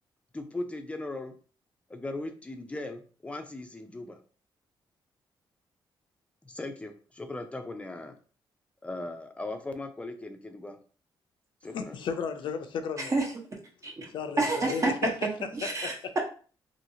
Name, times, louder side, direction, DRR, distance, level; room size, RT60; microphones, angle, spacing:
voice 1, 0.3-1.3 1.9-4.2 6.4-8.1 8.8-10.8 11.6-11.9, left 2 dB, 15° left, 6 dB, 0.5 m, -38 dB
voice 2, 11.6-13.2 14.1-14.9 15.6-15.9, left 6 dB, 70° left, 7 dB, 0.5 m, -34 dB
voice 3, 14.4-16.2, right 2 dB, 35° right, 0 dB, 1.0 m, -29 dB
2.9 x 2.8 x 2.7 m, 0.39 s
cardioid pair, 95°, 9 cm